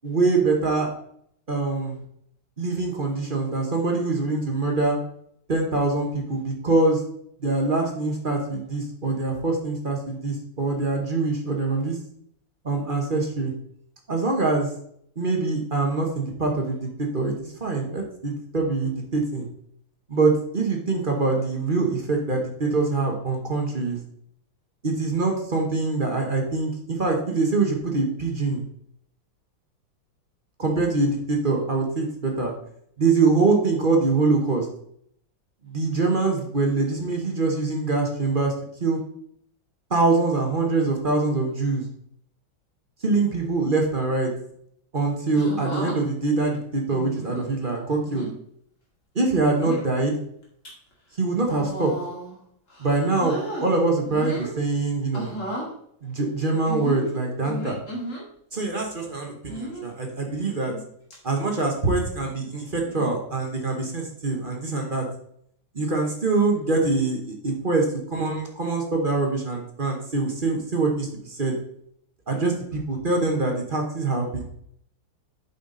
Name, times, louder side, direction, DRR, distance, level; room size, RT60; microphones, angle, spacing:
voice 1, 0.0-0.9 1.5-2.0 2.6-5.0 5.5-7.0 7.4-12.0 12.6-13.5 14.1-14.7 15.2-17.3 17.6-19.5 20.1-24.0 24.8-28.6 30.6-32.5 33.0-34.7 35.7-38.5 38.8-39.0 39.9-41.8 43.0-44.3 44.9-48.3 49.1-50.2 51.2-51.9 52.8-55.3 56.0-57.8 58.5-60.7 61.2-65.0 65.7-71.5 72.3-74.5, right 3 dB, 30° right, 1 dB, 1.2 m, -24 dB
sound 1, 45.3-46.0 46.9-47.5 48.0-48.3 49.3-49.9 50.4-50.7 51.4-52.4 52.7-53.7 54.1-54.6 55.1-55.7 56.7-58.2 59.5-59.9 60.5-60.8 61.1-61.2 62.8-63.2 64.3-64.5, right 1 dB, 40° left, 2.5 m, -34 dB
7.8 x 5.8 x 3.9 m, 0.68 s
omnidirectional pair, 2.1 m